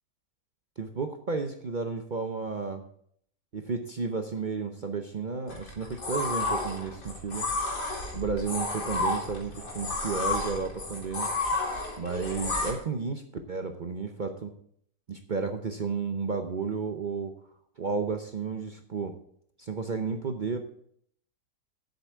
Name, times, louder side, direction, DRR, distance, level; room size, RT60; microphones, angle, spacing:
voice 1, 0.8-2.8 3.5-7.4 8.1-11.3 12.0-13.2 13.5-14.5 15.1-17.3 17.8-19.2 19.6-20.6, right 4 dB, 50° right, 6 dB, 0.6 m, -32 dB
sound 1, 5.5-12.7, left 2 dB, 90° left, 3.2 m, -31 dB
8.1 x 6.8 x 7.9 m, 0.65 s
omnidirectional pair, 1.8 m